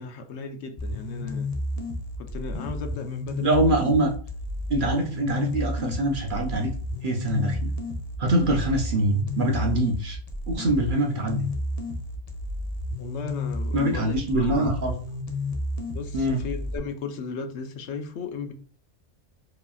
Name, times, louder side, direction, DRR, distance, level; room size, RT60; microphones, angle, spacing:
voice 1, 0.0-1.5 2.2-3.8 13.0-14.6 15.9-18.5, left 5 dB, 75° left, 0.9 m, -36 dB
sound 1, 0.8-16.8, left 1 dB, 45° left, 0.5 m, -32 dB
voice 2, 3.4-4.1 4.7-6.7 7.0-7.7 8.2-10.2 10.5-11.5 13.7-14.9 16.1-16.4, right 1 dB, 55° right, 0.7 m, -24 dB
4.8 x 2.8 x 2.3 m
omnidirectional pair, 1.2 m